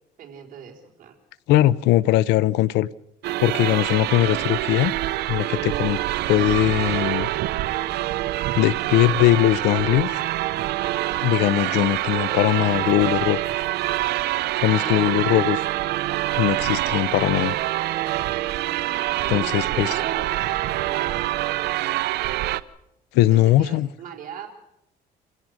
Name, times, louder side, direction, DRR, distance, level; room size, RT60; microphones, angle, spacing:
voice 1, 0.2-1.2 3.5-3.8 14.6-15.5 19.2-21.2 23.1-24.5, right 7 dB, 55° right, 4.2 m, -38 dB
voice 2, 1.5-2.9 3.4-4.9 5.3-6.0 6.3-7.3 8.6-10.2 11.2-13.6 14.6-15.6 16.4-17.5 19.3-19.9 23.1-23.9, left 14 dB, 85° left, 0.7 m, -20 dB
sound 1, 3.2-22.6, right 16 dB, 80° right, 0.7 m, -25 dB
27.5 x 16.5 x 6.4 m
cardioid pair, 110°, 17 cm